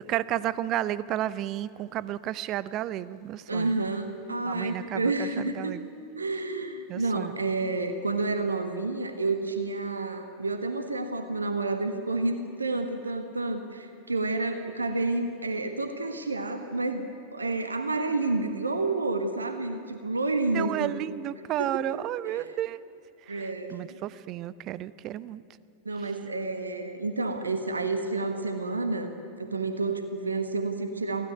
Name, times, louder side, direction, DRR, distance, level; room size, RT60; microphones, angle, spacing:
voice 1, 0.1-3.8 4.4-5.9 6.9-7.4 20.5-22.8 23.3-25.4, right 13 dB, 35° right, 18 dB, 0.7 m, -32 dB
voice 2, 3.5-5.8 6.2-21.0 21.7-22.0 22.3-22.5 23.3-24.0 25.8-31.3, right 3 dB, 75° right, 8 dB, 1.4 m, -30 dB
22.5 x 16.0 x 9.5 m, 2.8 s
figure-of-eight pair, 90°, 0 cm